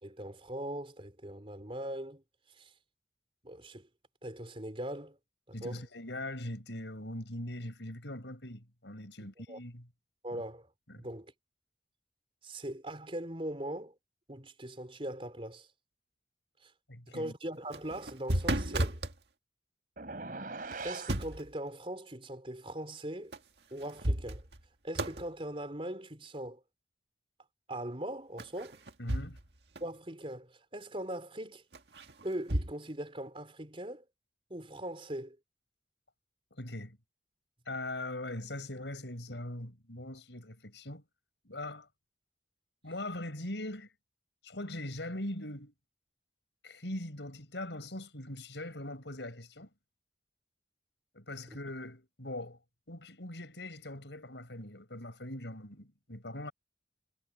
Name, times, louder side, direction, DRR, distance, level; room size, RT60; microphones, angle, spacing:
voice 1, 0.0-2.2 2.6-2.7 3.4-3.9 4.2-5.2 5.5-5.8 9.5-9.6 10.2-10.7 11.0-11.3 12.4-13.9 14.3-15.7 16.6-16.7 17.0-19.0 20.8-23.3 23.7-24.5 24.8-26.6 27.7-28.8 29.8-31.6 32.2-34.0 34.5-35.4 51.5-51.6, right 1 dB, 30° right, 4.2 m, -40 dB
voice 2, 5.5-9.8 10.3-10.4 10.9-11.1 16.9-17.3 29.0-29.4 36.6-37.0 37.7-41.0 41.4-41.9 42.8-43.9 44.4-45.7 46.6-49.7 51.1-52.6 52.9-56.5, left 1 dB, 85° left, 5.2 m, -41 dB
sound 1, 17.6-19.2 20.7-21.5 23.3-23.4 23.8-24.7 24.9-25.3 28.4-29.5 29.8-29.9 31.7-32.7, right 1 dB, 70° right, 1.8 m, -33 dB
sound 2, 20.0-21.2, right 3 dB, 50° right, 3.3 m, -41 dB
head